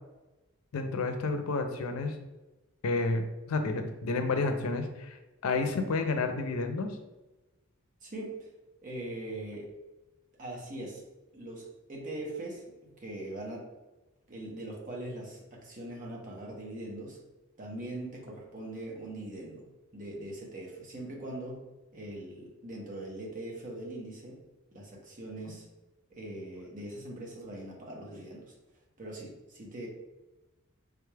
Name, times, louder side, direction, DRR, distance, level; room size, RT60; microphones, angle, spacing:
voice 1, 0.7-2.1 2.8-5.2 5.4-7.0, left 3 dB, 85° left, 7 dB, 0.4 m, -30 dB
voice 2, 8.0-8.5 8.8-9.7 10.4-11.0 11.3-13.7 14.3-17.2 17.6-21.7 21.9-24.4 24.7-25.7 26.1-28.5 29.0-29.9, right 1 dB, 40° right, -1 dB, 0.8 m, -41 dB
3.5 x 2.3 x 3.2 m, 1.1 s
head